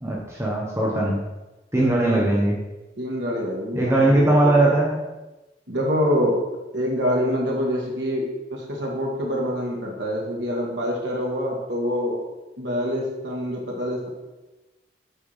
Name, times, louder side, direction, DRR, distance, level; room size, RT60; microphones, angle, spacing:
voice 1, 0.0-1.2 1.7-2.6 3.7-5.0, right 2 dB, 15° right, -3 dB, 1.1 m, -20 dB
voice 2, 1.8-2.5 3.0-4.7 5.7-6.4 6.7-12.2 12.6-14.1, equal, 85° right, -2 dB, 1.9 m, -26 dB
8.8 x 4.5 x 5.0 m, 1.1 s
head